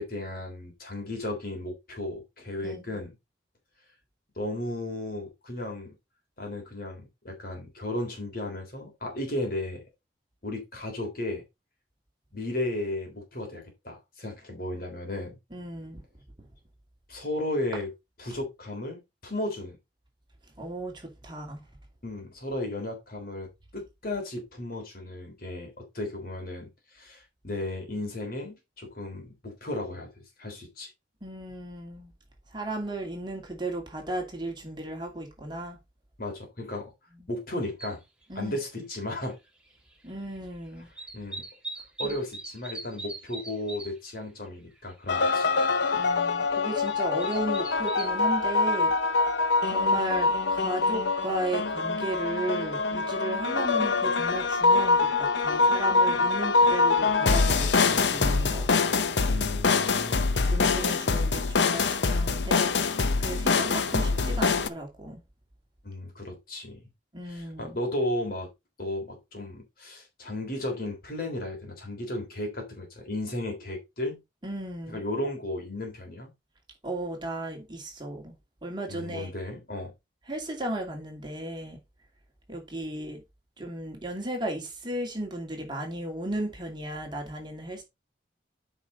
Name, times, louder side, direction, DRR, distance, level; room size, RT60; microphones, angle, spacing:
voice 1, 0.0-3.1 4.4-5.9 6.4-9.8 10.4-11.4 12.3-15.4 17.1-17.9 18.2-19.8 22.0-23.5 23.7-30.1 30.4-30.9 36.2-36.9 37.3-38.0 38.4-39.4 41.1-41.5 42.0-45.5 46.4-46.5 59.3-60.3 61.8-61.9 65.8-66.8 67.3-68.5 68.8-74.2 74.9-76.3 78.9-79.9, left 1 dB, 50° left, 3.5 m, -34 dB
voice 2, 15.5-16.0 20.6-21.6 31.2-32.1 32.5-35.8 38.3-38.6 40.0-40.9 42.0-42.1 45.9-48.9 49.7-58.7 60.3-65.2 67.1-67.8 74.4-75.0 76.8-78.3 78.6-79.3 80.3-81.8 82.5-83.2 83.6-87.8, right 1 dB, 25° right, 2.4 m, -35 dB
sound 1, 37.8-37.9 39.3-39.4 39.7-40.5 40.8-44.1 44.5-44.6 44.7-45.1 45.5-45.6 46.5-48.2 48.8-48.9, right 2 dB, 5° right, 1.5 m, -40 dB
sound 2, 45.1-64.7, left 4 dB, 70° left, 0.8 m, -24 dB
9.0 x 5.3 x 4.0 m
head